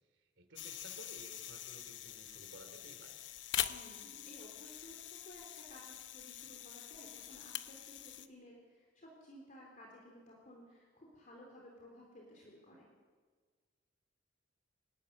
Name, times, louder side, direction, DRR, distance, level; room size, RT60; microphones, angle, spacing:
voice 1, 0.1-3.2, right 2 dB, 75° right, 6 dB, 2.8 m, -56 dB
sound 1, 0.6-8.3, left 11 dB, 70° left, 0.9 m, -44 dB
voice 2, 3.7-12.9, left 1 dB, 45° left, -1 dB, 3.7 m, -56 dB
25.5 x 12.5 x 9.6 m, 1.5 s
head